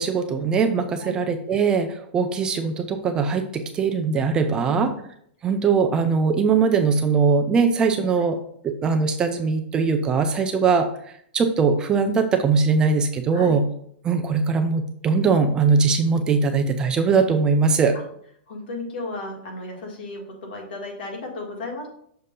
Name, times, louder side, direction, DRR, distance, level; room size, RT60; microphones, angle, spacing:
voice 1, 0.0-4.9 5.4-8.4 8.6-10.9 11.3-13.6 14.0-18.0, right 5 dB, 15° right, 6 dB, 0.3 m, -21 dB
voice 2, 4.5-4.9 13.3-13.6 17.9-18.0 18.5-21.9, left 2 dB, 70° left, 0 dB, 1.9 m, -34 dB
6.6 x 2.7 x 5.1 m, 0.66 s
supercardioid pair, 165°, 6 cm